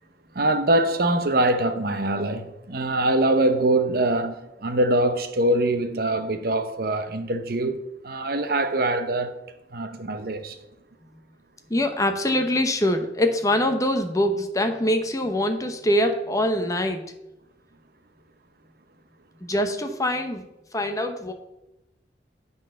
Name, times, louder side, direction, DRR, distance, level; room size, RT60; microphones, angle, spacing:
voice 1, 0.3-9.4 9.7-10.6, right 1 dB, 55° right, 0.8 m, -23 dB
voice 2, 11.7-17.1 19.4-20.4 20.7-21.3, left 1 dB, 20° left, 0.8 m, -24 dB
9.1 x 4.1 x 6.4 m
head